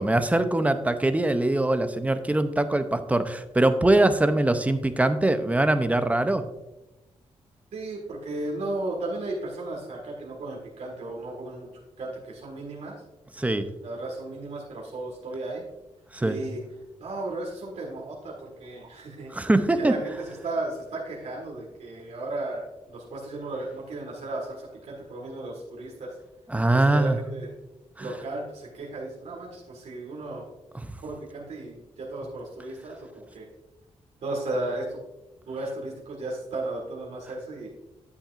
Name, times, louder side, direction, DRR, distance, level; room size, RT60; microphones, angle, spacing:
voice 1, 0.0-6.5 13.4-13.7 16.1-16.4 19.3-19.9 26.5-27.2 28.0-28.1 30.8-30.9, right 2 dB, 10° right, 10 dB, 0.6 m, -22 dB
voice 2, 7.7-11.7 12.0-12.9 13.8-15.6 16.2-16.6 17.0-19.3 19.8-22.6 22.9-26.1 26.7-27.5 28.0-30.4 31.0-33.5 34.2-35.0 35.5-37.7, right 2 dB, 75° right, -3 dB, 1.8 m, -34 dB
10.0 x 8.4 x 2.5 m, 1.0 s
wide cardioid pair, 115°, 12 cm